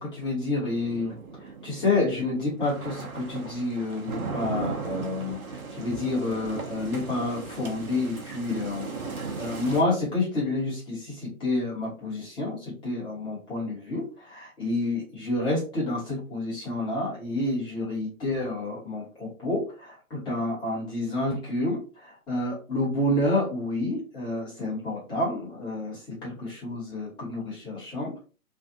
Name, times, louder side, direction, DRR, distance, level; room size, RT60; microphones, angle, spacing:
voice 1, 0.0-28.2, left 2 dB, 10° left, -6 dB, 1.2 m, -29 dB
sound 1, 0.7-9.8, right 4 dB, 90° right, 1.0 m, -37 dB
3.3 x 2.4 x 2.6 m, 0.34 s
hypercardioid pair, 140°, 42 cm